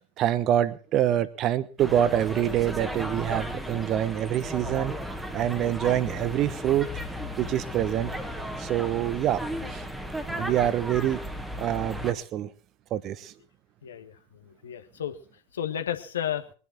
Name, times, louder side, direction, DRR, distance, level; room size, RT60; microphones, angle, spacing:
voice 1, 0.2-4.9 5.3-6.9 7.4-8.1 8.6-9.4 9.7-9.8 10.3-11.2 11.6-12.5 12.9-13.3, right 11 dB, 35° right, 16 dB, 1.1 m, -25 dB
sound 1, 1.8-12.1, equal, 5° right, 1.7 m, -35 dB
voice 2, 13.8-15.2 15.5-16.5, left 10 dB, 65° left, 8 dB, 1.6 m, -33 dB
22.0 x 11.0 x 4.6 m, 0.38 s
figure-of-eight pair, 90°, 0 cm